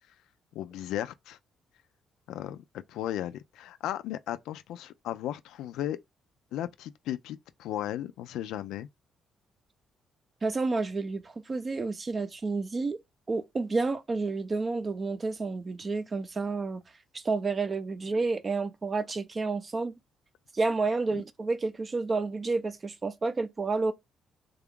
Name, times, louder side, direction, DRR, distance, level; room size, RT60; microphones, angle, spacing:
voice 1, 0.5-1.4 2.3-6.0 6.5-8.9 21.1-21.2, left 12 dB, 90° left, 0.3 m, -35 dB
voice 2, 10.4-13.0 13.3-16.8 17.2-19.9 20.6-23.9, right 3 dB, 35° right, 0.5 m, -30 dB
3.4 x 2.3 x 3.6 m
cardioid pair, 90°, 0 cm